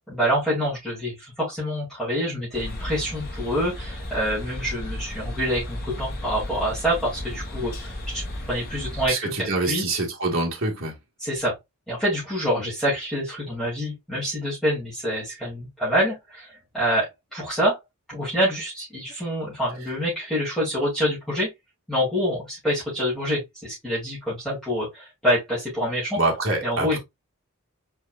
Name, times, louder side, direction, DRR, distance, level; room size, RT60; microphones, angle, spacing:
voice 1, 0.1-8.2 8.5-9.9 11.2-11.5 11.9-17.8 18.1-21.5 21.9-26.2 26.6-27.0, equal, ahead, 2.6 m, -26 dB
sound 1, 2.5-9.1, left 1 dB, 45° left, 1.3 m, -34 dB
voice 2, 9.1-10.9 26.2-27.0, right 2 dB, 60° right, 1.8 m, -25 dB
4.7 x 4.5 x 2.5 m
head